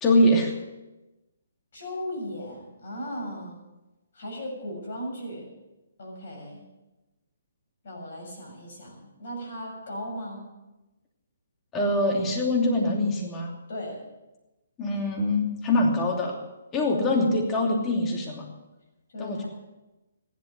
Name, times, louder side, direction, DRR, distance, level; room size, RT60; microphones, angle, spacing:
voice 1, 0.0-0.5 11.7-13.5 14.8-16.4 16.7-18.5 19.2-19.4, left 1 dB, 20° left, -1 dB, 2.9 m, -23 dB
voice 2, 1.7-3.6 4.1-5.5 6.0-6.6 7.8-10.5 13.7-14.0 19.1-19.5, equal, 60° left, 1 dB, 6.9 m, -37 dB
15.5 x 11.5 x 6.7 m, 1.0 s
figure-of-eight pair, 135°, 0 cm